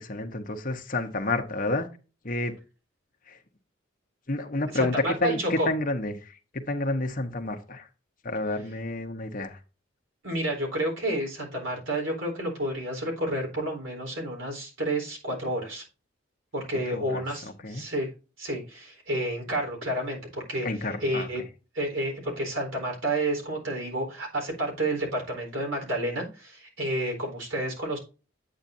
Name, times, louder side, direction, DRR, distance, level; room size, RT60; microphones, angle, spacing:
voice 1, 0.0-1.9 2.2-2.6 3.3-3.4 4.3-7.9 8.2-9.6 16.9-17.8 20.6-21.3, left 2 dB, 40° left, 6 dB, 1.1 m, -30 dB
voice 2, 4.7-5.7 10.2-15.8 16.5-18.1 18.4-20.7 21.0-21.4 21.7-28.0, right 1 dB, 75° right, 1 dB, 4.2 m, -30 dB
8.8 x 8.8 x 2.7 m, 0.32 s
head